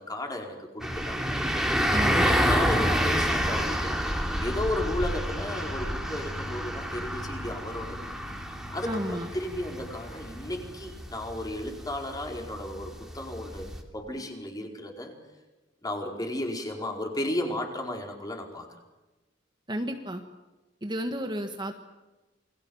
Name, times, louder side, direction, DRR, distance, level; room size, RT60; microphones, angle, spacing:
voice 1, 0.0-1.4 2.0-4.0 4.4-8.2 8.7-15.1 15.8-18.7, left 1 dB, 20° left, 2 dB, 4.7 m, -34 dB
sound 1, 0.8-13.8, equal, 5° right, 3.2 m, -29 dB
voice 2, 1.9-2.3 8.9-9.3 19.7-20.2 20.8-21.7, right 1 dB, 25° right, 5 dB, 1.6 m, -32 dB
sound 2, 3.8-11.5, equal, 70° left, 7.0 m, -44 dB
29.0 x 22.0 x 7.2 m, 1.1 s
head